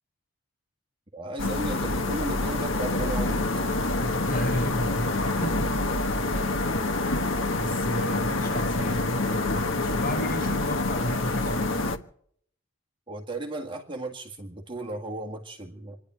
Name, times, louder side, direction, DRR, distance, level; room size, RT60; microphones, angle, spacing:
voice 1, 1.1-3.4 13.1-16.0, right 2 dB, 25° right, 1.9 m, -35 dB
sound 1, 1.4-12.0, left 2 dB, 80° left, 1.4 m, -27 dB
voice 2, 4.0-5.9 7.5-11.8, equal, 45° left, 5.8 m, -33 dB
27.5 x 11.0 x 4.6 m
head